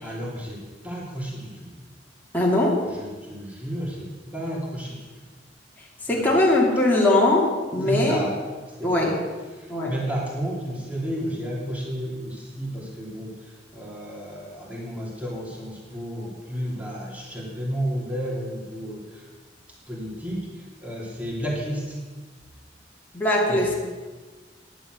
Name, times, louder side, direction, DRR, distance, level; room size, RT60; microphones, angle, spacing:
voice 1, 0.0-1.7 2.8-5.1 6.1-6.4 7.8-8.4 8.8-9.2 9.6-19.3 19.9-22.0 23.5-23.6, equal, 10° right, -4 dB, 2.9 m, -32 dB
voice 2, 2.3-2.8 6.0-8.2 8.8-9.2 9.7-9.9 23.1-23.7, left 1 dB, 10° left, -4 dB, 2.4 m, -20 dB
11.0 x 10.0 x 6.3 m, 1.3 s
head